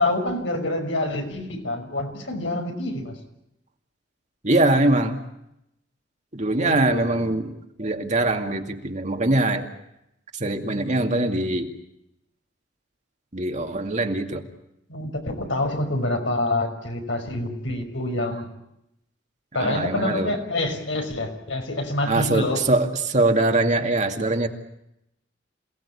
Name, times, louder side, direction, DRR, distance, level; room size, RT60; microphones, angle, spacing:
voice 1, 0.0-3.2 6.6-7.3 14.9-18.5 19.5-22.6, left 2 dB, 80° left, 4 dB, 5.8 m, -27 dB
voice 2, 4.4-5.2 6.3-9.7 10.3-11.7 13.3-14.4 19.6-20.3 22.1-24.5, right 2 dB, 40° right, 5 dB, 2.4 m, -22 dB
28.0 x 18.5 x 8.5 m, 0.83 s
head